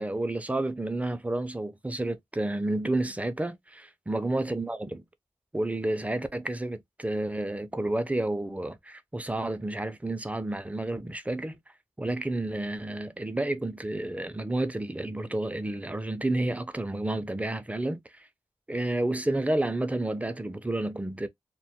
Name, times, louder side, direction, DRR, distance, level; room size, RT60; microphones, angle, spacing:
voice 1, 0.0-5.0 5.5-11.6 12.0-18.3 18.7-21.3, right 2 dB, 15° right, 0.3 m, -30 dB
2.2 x 2.1 x 2.6 m
wide cardioid pair, 80°, 11 cm